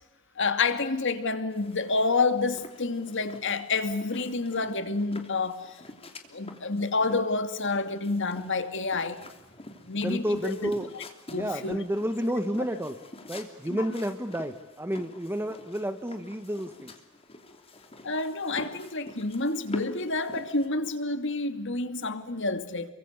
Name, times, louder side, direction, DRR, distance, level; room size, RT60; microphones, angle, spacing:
voice 1, 0.4-5.8 6.3-9.2 9.9-10.7 11.3-11.8 13.7-13.8 18.0-22.9, left 3 dB, 55° left, 2.5 m, -29 dB
sound 1, 1.5-20.7, left 1 dB, 25° left, 3.0 m, -47 dB
voice 2, 10.0-10.9 11.3-12.9 13.3-17.0, equal, 10° right, 1.3 m, -31 dB
30.0 x 24.0 x 8.2 m
head